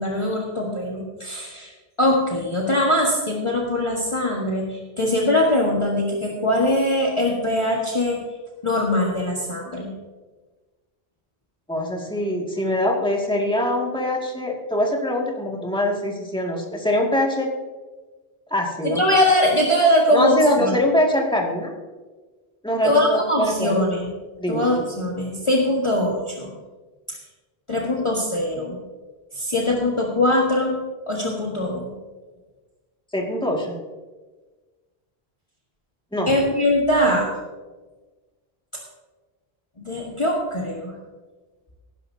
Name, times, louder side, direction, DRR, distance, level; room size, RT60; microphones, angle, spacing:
voice 1, 0.0-1.7 2.0-8.2 8.6-9.9 18.9-20.8 22.8-24.1 24.5-26.5 27.1-27.2 27.7-28.8 29.3-30.8 31.1-31.9 36.3-37.3 39.8-40.9, left 1 dB, 30° left, -3 dB, 1.5 m, -21 dB
voice 2, 11.7-17.5 18.5-19.0 20.1-21.7 22.6-23.8 24.4-24.7 33.1-33.8 36.1-36.3, left 1 dB, 5° left, -1 dB, 2.0 m, -23 dB
18.0 x 11.0 x 2.7 m, 1.3 s
omnidirectional pair, 1.1 m